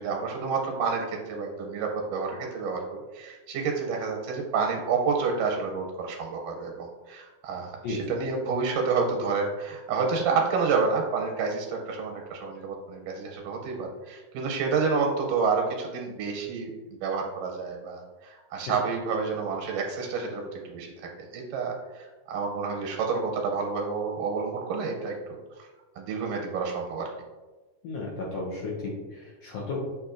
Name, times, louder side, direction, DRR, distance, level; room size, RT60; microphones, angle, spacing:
voice 1, 0.0-16.7 17.0-20.9 21.3-25.7 26.0-27.1, right 5 dB, 85° right, 1 dB, 2.1 m, -29 dB
voice 2, 27.8-29.9, left 3 dB, 80° left, -5 dB, 1.5 m, -34 dB
6.6 x 2.8 x 2.4 m, 1.2 s
omnidirectional pair, 3.6 m